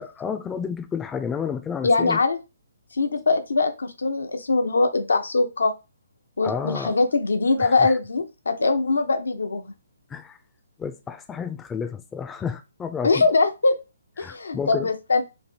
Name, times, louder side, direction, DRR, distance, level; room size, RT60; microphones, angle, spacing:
voice 1, 0.0-2.2 6.4-6.9 7.6-7.9 10.1-10.4 10.8-13.3 14.2-14.9, left 6 dB, 10° left, 0.5 m, -31 dB
voice 2, 1.8-2.4 2.9-5.7 6.4-9.7 13.0-13.8 14.2-15.2, left 3 dB, 70° left, 0.8 m, -22 dB
3.2 x 2.6 x 4.3 m
figure-of-eight pair, 135°, 0 cm